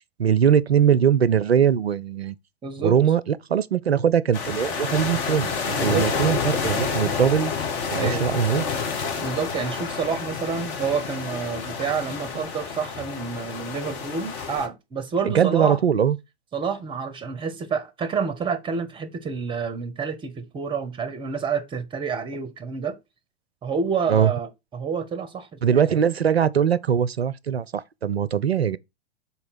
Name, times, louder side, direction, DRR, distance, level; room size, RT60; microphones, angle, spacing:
voice 1, 0.2-2.3 2.8-5.5 5.8-7.5 7.9-8.6 15.2-16.2 24.1-24.3 25.6-28.8, right 8 dB, 85° right, 0.5 m, -21 dB
voice 2, 2.6-3.0 5.8-6.1 7.9-8.3 9.2-15.8 16.5-23.0 23.6-25.9, right 5 dB, 15° right, 0.8 m, -28 dB
sound 1, 4.3-14.7, left 5 dB, 35° left, 1.1 m, -29 dB
5.7 x 4.2 x 4.1 m
figure-of-eight pair, 100°, 31 cm